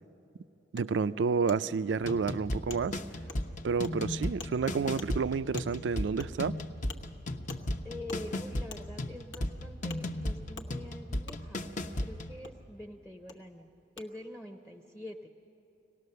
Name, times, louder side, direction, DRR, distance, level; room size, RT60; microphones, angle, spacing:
voice 1, 0.7-3.0 3.6-6.5, right 5 dB, 75° right, 15 dB, 0.4 m, -30 dB
Wood, 0.8-0.9 1.5-1.6 2.1-2.2 2.7-2.8 3.3-3.4 3.8-3.9 4.4-4.5 5.0-5.1 5.6-5.7 6.2-6.3 6.9-7.0 7.5-7.6 8.1-8.2 8.7-8.8 9.3-9.5 9.9-10.0 10.6-10.7 11.3-11.4 12.4-12.5 13.3-13.4 14.0-14.1, left 4 dB, 90° left, 1.1 m, -45 dB
sound 1, 2.0-12.4, left 1 dB, 45° left, 0.7 m, -36 dB
voice 2, 7.8-11.6 12.0-13.7 14.0-15.3, left 1 dB, 5° left, 5 dB, 0.7 m, -45 dB
25.0 x 18.0 x 6.7 m, 2.9 s
head